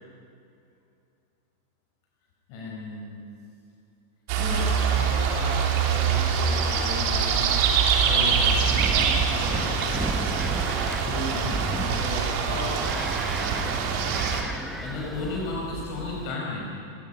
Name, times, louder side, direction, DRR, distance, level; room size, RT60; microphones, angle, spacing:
voice 1, 2.5-3.2 4.4-7.5 8.0-10.1 11.1-13.1 14.8-16.7, left 2 dB, 45° left, -3 dB, 5.3 m, -35 dB
sound 1, 4.3-14.4, right 6 dB, 45° right, 3.1 m, -24 dB
Wind, 8.2-16.4, equal, ahead, 0.9 m, -34 dB
29.5 x 19.0 x 5.5 m, 2.6 s
figure-of-eight pair, 90°, 0 cm